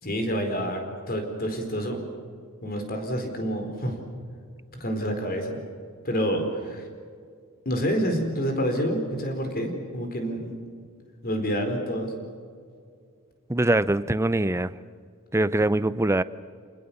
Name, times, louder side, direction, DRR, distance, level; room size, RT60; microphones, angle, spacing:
voice 1, 0.0-2.0 2.6-4.0 4.8-5.6 6.0-6.9 7.6-10.5 11.2-12.1, equal, 45° left, 5 dB, 4.5 m, -28 dB
voice 2, 13.5-14.7 15.3-16.2, right 1 dB, 10° right, 16 dB, 0.5 m, -23 dB
28.0 x 20.5 x 7.2 m, 2.2 s
head